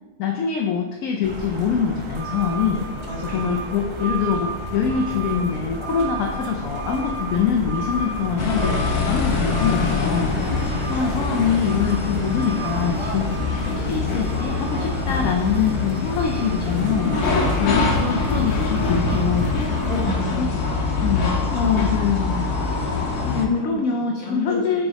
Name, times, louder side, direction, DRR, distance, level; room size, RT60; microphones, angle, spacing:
voice 1, 0.2-2.8 3.2-8.8 9.1-10.3 10.9-13.3 13.6-19.5 20.3-20.5 21.0-22.5 23.3-24.9, left 7 dB, 70° left, 1 dB, 0.9 m, -24 dB
sound 1, 1.2-20.0, right 1 dB, 35° right, 0.4 m, -31 dB
voice 2, 3.1-3.4 11.0-11.1 13.2-13.4 19.9-21.4 22.2-22.3 22.6-23.0 23.4-24.6, left 1 dB, 20° left, -6 dB, 1.6 m, -31 dB
sound 2, 8.4-23.5, left 4 dB, 85° left, 1.4 m, -24 dB
6.4 x 3.6 x 4.1 m, 1.2 s
omnidirectional pair, 1.6 m